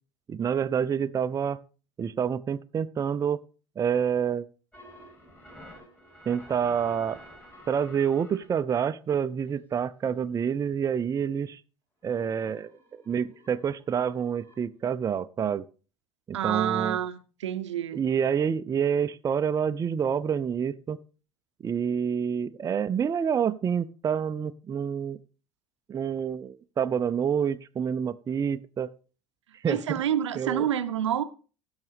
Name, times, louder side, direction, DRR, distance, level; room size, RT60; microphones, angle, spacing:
voice 1, 0.3-1.6 2.0-3.4 3.8-4.5 6.3-7.2 7.7-11.6 12.0-15.7 16.3-17.0 17.9-21.0 21.6-25.2 25.9-28.9 29.6-29.8 30.4-30.7, right 7 dB, 20° right, 0.5 m, -28 dB
sound 1, 4.7-8.5 9.4-9.5 10.1-10.2 12.1-14.5, equal, 10° left, 3.3 m, -50 dB
voice 2, 16.3-18.0 29.7-31.2, right 10 dB, 75° right, 0.6 m, -28 dB
16.0 x 6.3 x 3.4 m
figure-of-eight pair, 65°, 15 cm